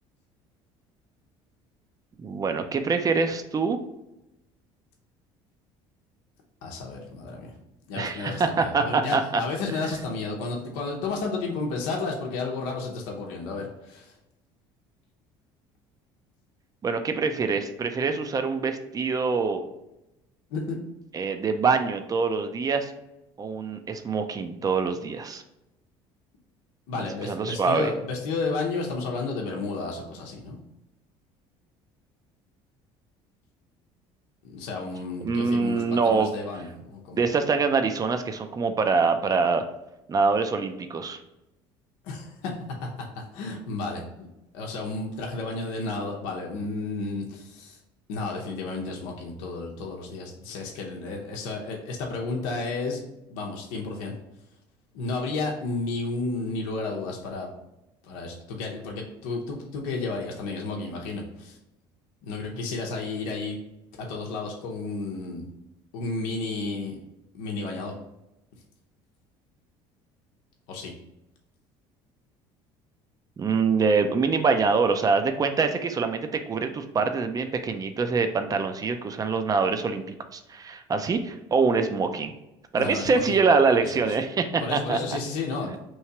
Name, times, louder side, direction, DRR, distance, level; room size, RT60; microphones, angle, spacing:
voice 1, 2.2-3.8 7.9-9.4 9.7-10.0 16.8-19.6 21.1-22.9 23.4-25.4 26.9-27.9 35.2-36.3 37.2-39.6 40.1-41.2 73.4-80.0 80.3-82.3 82.7-85.0 85.6-85.8, right 4 dB, 30° right, 8 dB, 0.5 m, -25 dB
voice 2, 6.6-7.5 7.9-14.1 20.5-20.8 26.9-30.6 34.4-37.2 42.0-42.5 42.8-42.9 43.3-44.0 44.5-47.8 48.1-53.0 53.3-54.1 54.9-57.5 58.0-61.6 62.2-63.6 64.0-65.5 65.9-67.0 67.3-67.9 70.7-70.9 82.8-83.4 83.8-83.9 84.6-85.8, left 3 dB, 80° left, -1 dB, 0.7 m, -32 dB
3.1 x 2.7 x 4.5 m, 0.91 s
supercardioid pair, 85°, 13 cm